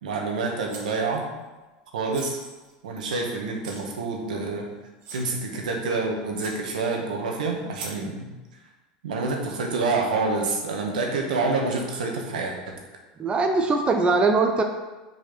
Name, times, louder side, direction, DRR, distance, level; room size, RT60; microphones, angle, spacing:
voice 1, 0.0-1.3 1.9-2.4 2.8-4.7 5.1-8.3 9.0-12.5, right 3 dB, 80° right, 1 dB, 1.5 m, -27 dB
sound 1, 0.7-1.2 2.1-3.2 3.6-3.8 4.5-4.6 5.0-5.3 5.9-6.0 6.4-6.6 7.7-8.0, right 3 dB, 60° right, 1.8 m, -40 dB
voice 2, 13.2-14.6, right 3 dB, 25° right, 4 dB, 0.7 m, -21 dB
5.3 x 4.7 x 6.0 m, 1.2 s
hypercardioid pair, 90°, 4 cm